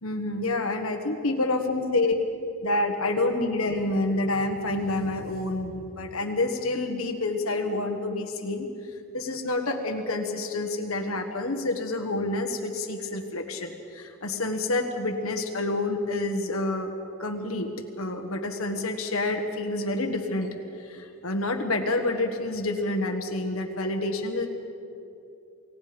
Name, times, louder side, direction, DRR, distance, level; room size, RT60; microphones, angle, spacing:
voice 1, 0.0-2.2 2.6-8.7 9.1-16.9 17.2-17.7 18.0-24.5, left 2 dB, 80° left, 4 dB, 1.6 m, -28 dB
29.0 x 17.5 x 5.2 m, 2.6 s
head